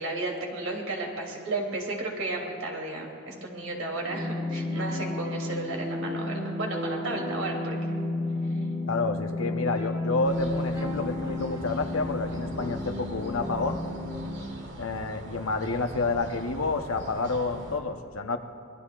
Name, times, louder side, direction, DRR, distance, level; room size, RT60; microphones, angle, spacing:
voice 1, 0.0-7.7, right 2 dB, 75° right, -1 dB, 3.0 m, -33 dB
sound 1, 4.1-14.4, left 2 dB, 20° right, 1.8 m, -32 dB
voice 2, 8.9-13.8 14.8-18.4, left 3 dB, 90° left, 5 dB, 1.0 m, -29 dB
sound 2, 10.2-17.8, right 1 dB, 60° right, 1.8 m, -42 dB
26.0 x 20.5 x 2.5 m, 2.5 s
head